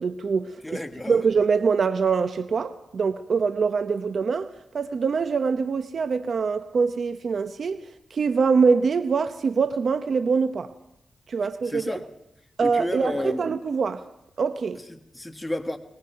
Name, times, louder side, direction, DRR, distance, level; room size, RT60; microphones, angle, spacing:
voice 1, 0.0-0.6 1.1-7.8 8.1-10.7 11.3-12.0 12.6-14.1 14.4-14.8, right 5 dB, 65° right, 0.7 m, -24 dB
voice 2, 0.6-1.2 11.6-12.1 12.6-13.4 14.9-15.8, left 1 dB, 15° left, 1.5 m, -31 dB
23.0 x 21.0 x 5.7 m
cardioid pair, 70°, 0 cm